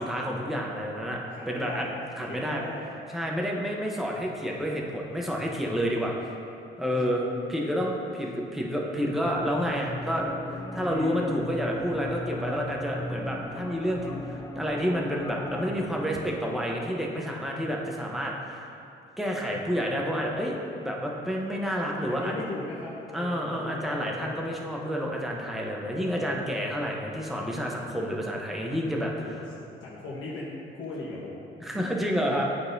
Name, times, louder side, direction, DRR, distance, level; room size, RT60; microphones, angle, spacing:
voice 1, 0.0-1.9 2.2-2.6 3.1-6.2 6.8-18.7 19.2-22.3 23.1-29.1 31.6-32.4, equal, ahead, -2 dB, 0.8 m, -29 dB
voice 2, 1.3-1.9 2.3-2.9 6.9-7.3 10.7-11.3 22.1-24.5 29.2-29.4 29.8-31.5 31.7-32.2, left 2 dB, 75° left, -7 dB, 1.3 m, -39 dB
sound 1, 9.2-16.4, left 2 dB, 15° left, 0.4 m, -38 dB
11.5 x 4.0 x 2.7 m, 2.6 s
cardioid pair, 90°, 20 cm